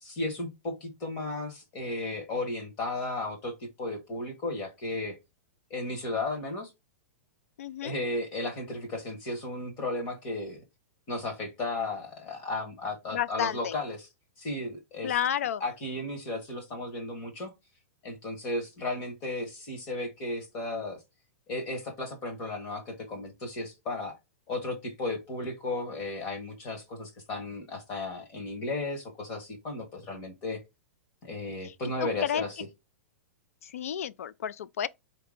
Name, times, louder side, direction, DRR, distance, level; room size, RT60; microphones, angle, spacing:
voice 1, 0.0-5.2 5.7-6.7 7.8-10.6 11.1-14.1 14.4-15.2 15.6-17.5 18.0-21.0 21.5-24.2 24.5-30.6 31.2-32.6, left 2 dB, 25° left, 1.2 m, -34 dB
voice 2, 7.6-8.0 13.1-13.7 15.0-15.6 31.6-31.7 32.0-32.4 33.6-34.9, left 9 dB, 75° left, 0.4 m, -31 dB
4.4 x 2.9 x 3.6 m
supercardioid pair, 180°, 8 cm